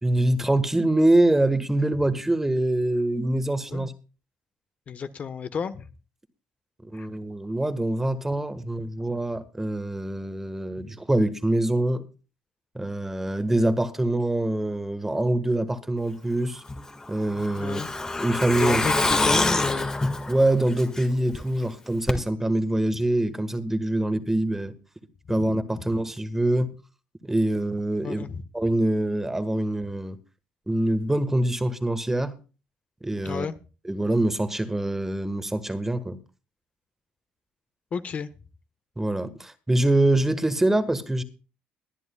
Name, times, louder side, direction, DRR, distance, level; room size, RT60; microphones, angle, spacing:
voice 1, 0.0-3.9 6.8-12.0 12.7-16.6 17.1-17.8 18.2-18.8 20.3-24.7 25.3-26.7 27.2-28.2 28.5-30.2 30.7-32.3 33.0-33.5 33.8-36.2 39.0-41.2, right 1 dB, 10° right, 1.5 m, -24 dB
voice 2, 4.9-5.8 6.9-7.1 17.6-17.9 18.5-19.9 25.7-25.8 28.0-28.4 33.2-33.5 37.9-38.3, left 6 dB, 40° left, 1.2 m, -32 dB
Truck, 16.7-21.4 21.7-21.8 22.1-22.2, left 2 dB, 15° left, 1.8 m, -26 dB
22.0 x 10.5 x 2.3 m
cardioid pair, 120°, 4 cm